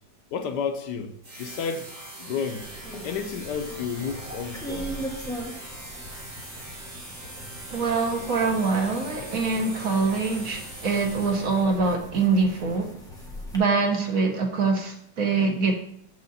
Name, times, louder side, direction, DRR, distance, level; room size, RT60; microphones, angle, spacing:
voice 1, 0.3-1.9 2.2-2.7 3.0-5.0, left 6 dB, 75° left, 1.4 m, -31 dB
sound 1, 1.2-11.8, right 2 dB, 70° right, 3.7 m, -42 dB
sound 2, 2.6-13.6, equal, ahead, 1.4 m, -40 dB
voice 2, 7.7-12.9 13.5-15.7, right 4 dB, 55° right, 1.6 m, -24 dB
7.9 x 6.6 x 4.2 m
omnidirectional pair, 1.9 m